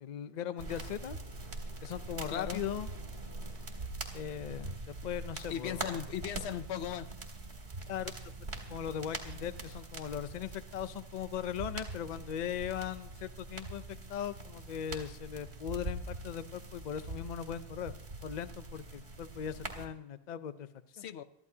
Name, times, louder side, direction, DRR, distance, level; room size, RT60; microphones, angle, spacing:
voice 1, 0.0-1.2 1.8-2.9 4.1-6.0 7.9-8.1 8.7-17.9 18.2-20.7 21.0-21.1, left 9 dB, 50° left, 13 dB, 0.6 m, -39 dB
sound 1, 0.6-19.9, right 2 dB, 75° right, 2.2 m, -43 dB
voice 2, 2.3-2.6 5.5-7.1 21.0-21.2, left 9 dB, 85° left, 13 dB, 0.9 m, -37 dB
23.0 x 13.5 x 2.8 m, 0.82 s
omnidirectional pair, 1.1 m